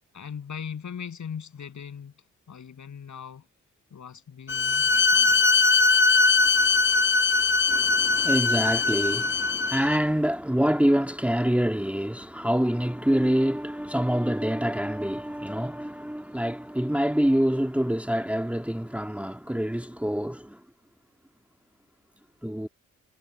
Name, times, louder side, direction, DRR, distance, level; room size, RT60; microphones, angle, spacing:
voice 1, 0.1-2.1 2.5-3.5 3.9-5.4, left 7 dB, 65° left, 7.8 m, -39 dB
Bowed string instrument, 4.5-10.0, left 4 dB, 35° left, 1.0 m, -21 dB
voice 2, 7.7-20.6 22.4-22.7, equal, 5° right, 1.8 m, -26 dB
supercardioid pair, 50°, 31 cm